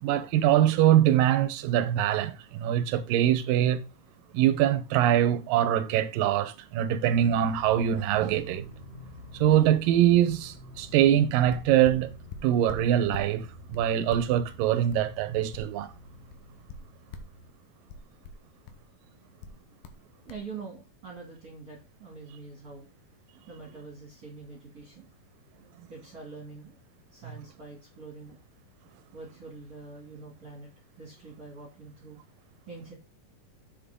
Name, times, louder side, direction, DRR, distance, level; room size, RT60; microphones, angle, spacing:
voice 1, 0.0-3.8 4.3-8.6 9.3-12.1 12.4-15.9, right 11 dB, 75° right, 2.5 m, -23 dB
sound 1, 7.1-17.5, left 1 dB, 5° right, 2.6 m, -47 dB
sound 2, 11.5-13.3 13.7-16.0 16.3-17.4 17.9-18.9 19.4-20.0 20.3-20.5, left 5 dB, 85° left, 2.9 m, -44 dB
voice 2, 20.2-22.9 23.5-25.1 25.9-26.8 27.1-28.4 29.1-30.7 31.0-32.2 32.7-32.9, right 4 dB, 30° right, 2.3 m, -44 dB
7.6 x 7.1 x 3.7 m
omnidirectional pair, 4.2 m